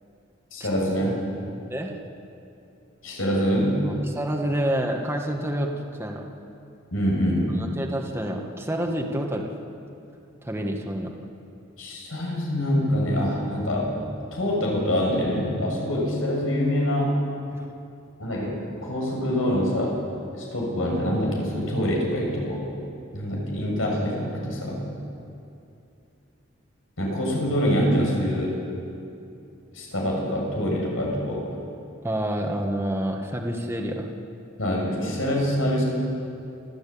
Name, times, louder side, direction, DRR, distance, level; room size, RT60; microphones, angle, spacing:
voice 1, 0.5-1.2 3.0-3.8 6.9-7.5 11.8-14.0 14.3-17.2 18.2-20.0 20.3-22.6 23.1-24.9 27.0-28.5 29.7-31.5 34.6-35.8, equal, 90° left, -1 dB, 6.9 m, -25 dB
voice 2, 4.2-5.7 6.0-6.3 7.6-9.5 10.4-11.1 17.5-17.7 32.0-34.1, right 1 dB, 10° right, 1 dB, 1.7 m, -28 dB
29.5 x 13.5 x 8.7 m, 2.7 s
head